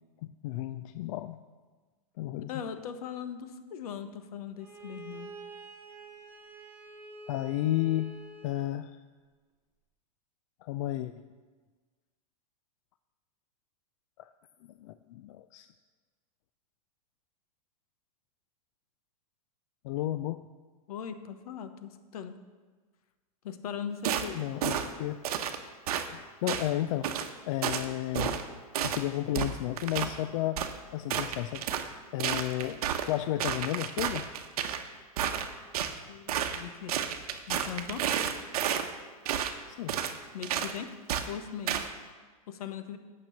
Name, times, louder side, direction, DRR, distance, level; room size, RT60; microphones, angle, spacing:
voice 1, 0.2-1.4 2.2-2.6 7.3-8.1 8.4-9.0 10.6-11.1 14.2-14.3 14.8-15.7 19.8-20.4 24.3-25.2 26.0-28.4 28.8-34.3 39.7-40.0, left 14 dB, 55° left, 11 dB, 0.4 m, -33 dB
voice 2, 2.5-5.3 20.9-22.4 23.4-24.4 36.1-36.9 37.5-38.0 40.3-40.9 41.3-41.8 42.5-43.0, left 8 dB, 75° left, 10 dB, 0.9 m, -39 dB
Bowed string instrument, 4.6-8.8, right 2 dB, 10° right, 1.2 m, -47 dB
sound 1, 24.0-24.3 24.6-24.9 25.2-25.6 25.9-26.1 26.5-26.7 27.0-27.3 27.6-27.9 28.1-28.4 28.7-29.0 29.3-30.1 30.6-30.7 31.1-31.9 32.2-33.1 33.4-34.8 35.2-35.9 36.3-36.6 36.9-38.9 39.3-39.5 39.9-40.2 40.4-40.7 41.1-41.3 41.7-41.9, right 9 dB, 75° right, 0.9 m, -31 dB
8.9 x 6.1 x 7.0 m, 1.4 s
supercardioid pair, 140°, 19 cm